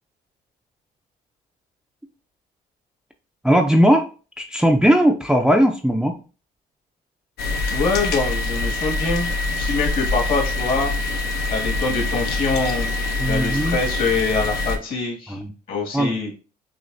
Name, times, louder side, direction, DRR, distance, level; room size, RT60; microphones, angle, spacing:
voice 1, 3.4-4.1 4.4-6.1 13.2-13.8 15.3-15.5 15.9-16.2, equal, 5° right, 4 dB, 0.4 m, -18 dB
sound 1, 7.4-14.8, left 2 dB, 75° left, 0.7 m, -24 dB
voice 2, 7.7-9.3 9.6-10.9 11.5-12.9 13.3-15.4 15.7-16.3, left 4 dB, 60° left, -1 dB, 1.8 m, -24 dB
6.3 x 2.4 x 2.6 m, 0.35 s
cardioid pair, 110°, 17 cm